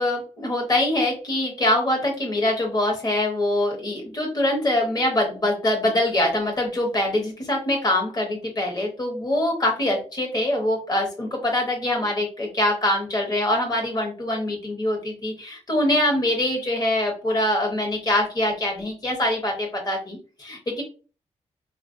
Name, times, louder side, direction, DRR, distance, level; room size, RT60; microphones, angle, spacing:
voice 1, 0.0-20.8, left 1 dB, 35° left, 0 dB, 0.9 m, -24 dB
4.0 x 2.4 x 2.5 m, 0.36 s
wide cardioid pair, 105°, 12 cm